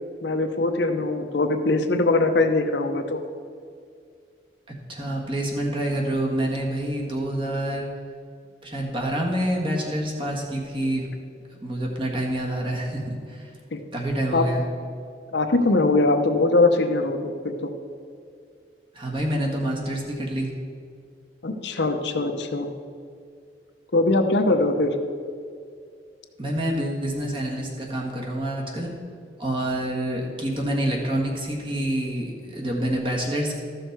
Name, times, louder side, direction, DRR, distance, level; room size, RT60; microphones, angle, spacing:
voice 1, 0.2-3.2 13.7-13.8 14.3-14.4 15.3-17.7 21.4-22.7 23.9-24.9, left 2 dB, 70° left, 6 dB, 0.8 m, -22 dB
voice 2, 4.9-7.9 8.6-11.1 11.5-13.5 13.9-14.6 18.9-20.5 26.4-28.9 29.4-33.6, right 1 dB, 30° right, -1 dB, 1.6 m, -27 dB
13.0 x 6.4 x 4.6 m, 2.2 s
head